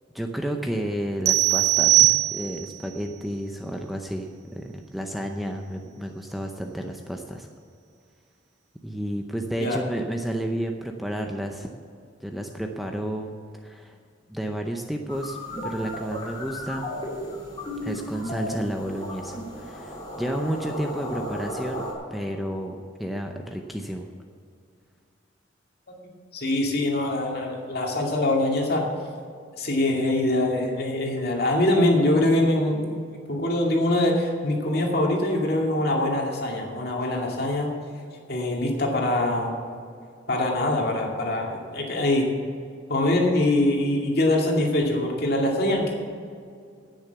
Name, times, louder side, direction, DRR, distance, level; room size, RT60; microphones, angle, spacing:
voice 1, 0.1-7.5 8.8-11.7 12.2-13.3 13.6-14.0 14.3-15.4 15.6-16.9 17.8-21.8 22.1-24.1, right 1 dB, ahead, 3 dB, 0.6 m, -31 dB
sound 1, 1.3-2.8, right 16 dB, 60° right, 0.8 m, -20 dB
sound 2, 15.1-21.9, equal, 25° left, 2.8 m, -34 dB
voice 2, 25.9-28.9 29.6-32.8 33.3-37.7 38.3-39.6 40.3-42.3 42.9-45.9, left 1 dB, 55° left, -1 dB, 2.3 m, -23 dB
10.5 x 9.1 x 6.9 m, 2.3 s
head